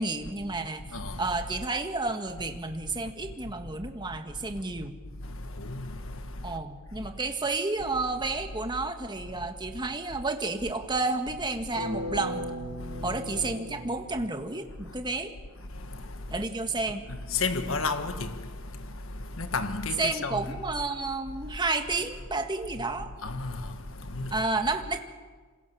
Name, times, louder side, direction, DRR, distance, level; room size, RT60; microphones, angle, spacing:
voice 1, 0.0-0.9 1.2-4.9 6.4-12.5 13.0-15.3 16.3-17.0 20.0-23.1 24.3-25.0, right 3 dB, 20° right, 1.8 m, -31 dB
voice 2, 0.8-1.3 5.2-6.6 7.0-7.1 12.8-13.2 14.8-15.0 15.6-16.4 16.9-20.6 21.4-21.5 22.8-22.9 23.2-24.4, left 3 dB, 65° left, 1.6 m, -34 dB
sound 1, 11.7-14.8, equal, 85° left, 6.0 m, -37 dB
27.0 x 26.5 x 7.2 m
head